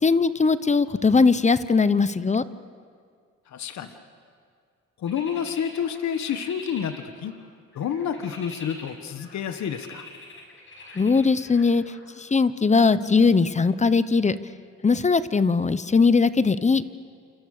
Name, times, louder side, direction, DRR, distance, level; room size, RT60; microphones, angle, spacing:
voice 1, 0.0-2.4 11.0-11.8 12.2-14.3 14.8-16.8, left 4 dB, 25° left, 14 dB, 0.9 m, -20 dB
voice 2, 3.5-4.0 5.0-7.3 7.7-10.1, left 8 dB, 65° left, 9 dB, 1.5 m, -29 dB
sound 1, 5.1-7.4 7.7-12.0, left 3 dB, 40° left, 6.4 m, -44 dB
28.5 x 28.5 x 6.7 m, 2.1 s
cardioid pair, 90°, 30 cm